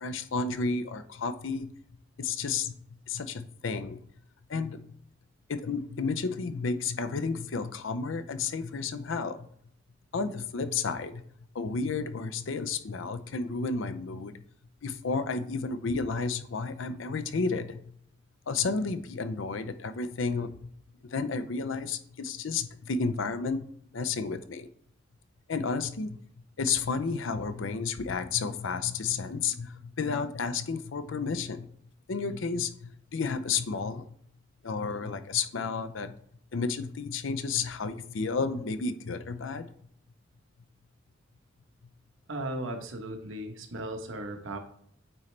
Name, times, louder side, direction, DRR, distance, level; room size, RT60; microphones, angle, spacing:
voice 1, 0.0-1.7 2.2-2.7 3.1-4.0 4.5-4.8 5.5-9.4 10.1-11.2 11.5-14.3 14.8-17.8 18.5-20.5 21.1-23.7 23.9-24.7 25.5-26.2 26.6-31.7 32.1-34.0 34.6-36.1 36.5-39.7, left 4 dB, 75° left, 11 dB, 0.6 m, -31 dB
voice 2, 42.3-44.6, right 1 dB, 80° right, 5 dB, 1.0 m, -36 dB
8.8 x 4.2 x 3.3 m, 0.65 s
head